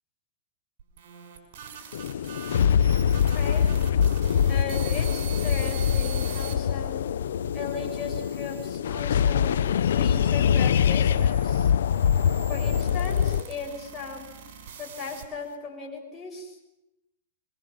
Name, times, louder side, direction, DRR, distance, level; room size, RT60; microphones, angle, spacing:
sound 1, 0.8-6.5 7.2-8.8 9.6-15.6, right 8 dB, 55° right, 6.3 m, -44 dB
sound 2, 1.9-13.4, left 8 dB, 80° left, 0.9 m, -24 dB
voice 1, 3.3-3.7 4.5-7.0 7.5-9.5 9.9-11.7 12.5-14.3 14.8-16.6, left 4 dB, 20° left, -2 dB, 7.0 m, -37 dB
23.5 x 23.5 x 7.3 m, 0.89 s
hypercardioid pair, 125°, 0 cm